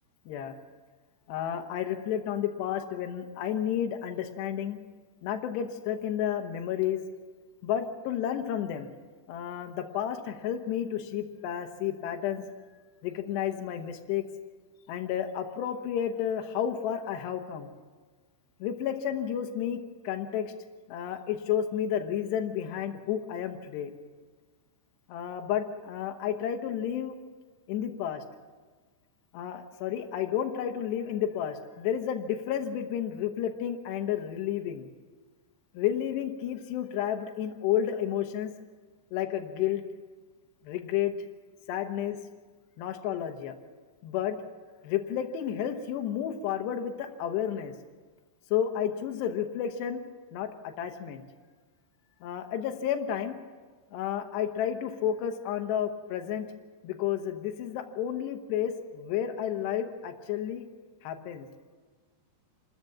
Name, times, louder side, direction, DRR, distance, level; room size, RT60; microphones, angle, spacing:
voice 1, 0.3-0.6 1.3-4.8 5.2-7.0 7.6-8.9 9.3-12.4 13.0-14.3 14.9-17.7 18.6-20.5 20.9-23.9 25.1-27.2 27.7-28.2 29.3-34.9 35.7-38.5 39.1-39.8 40.6-41.1 41.7-42.2 42.8-43.5 44.0-44.4 44.8-47.7 48.5-50.0 50.3-51.2 52.2-53.4 53.9-56.5 56.8-60.7 61.0-61.5, left 9 dB, 90° left, 5 dB, 3.2 m, -31 dB
27.5 x 13.5 x 7.3 m, 1.4 s
omnidirectional pair, 4.7 m